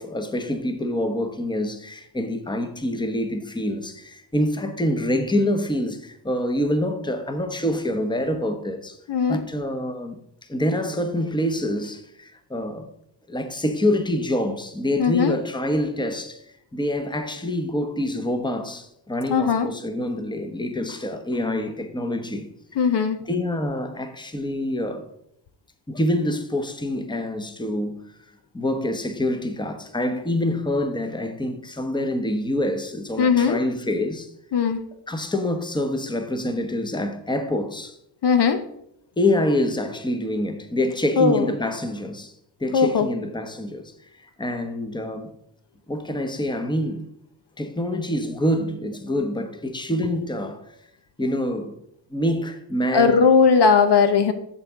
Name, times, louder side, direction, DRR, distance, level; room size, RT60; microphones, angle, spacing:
voice 1, 0.0-9.0 9.3-10.2 10.5-12.9 13.3-16.4 16.7-22.5 22.9-25.1 25.9-28.0 28.5-34.3 35.1-37.9 39.2-42.3 42.6-43.9 44.4-45.3 45.9-47.1 47.6-50.6 51.2-51.8 52.1-53.3, left 1 dB, 10° left, 1.0 m, -26 dB
voice 2, 9.1-9.4 15.0-15.4 19.3-19.7 22.8-23.2 33.2-33.6 34.5-34.8 38.2-38.6 41.2-41.5 42.7-43.1 52.9-54.3, left 5 dB, 60° left, 0.9 m, -18 dB
8.3 x 6.9 x 3.6 m
cardioid pair, 75°, 47 cm